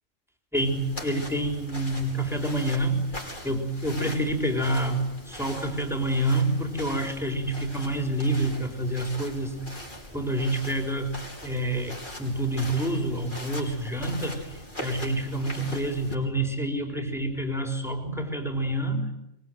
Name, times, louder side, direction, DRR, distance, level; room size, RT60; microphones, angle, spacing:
sound 1, 0.5-16.1, equal, 40° left, 6.2 m, -41 dB
voice 1, 0.5-3.1 3.4-9.9 10.1-19.1, right 1 dB, ahead, 3 dB, 4.0 m, -28 dB
24.5 x 24.0 x 9.3 m, 0.85 s
omnidirectional pair, 1.3 m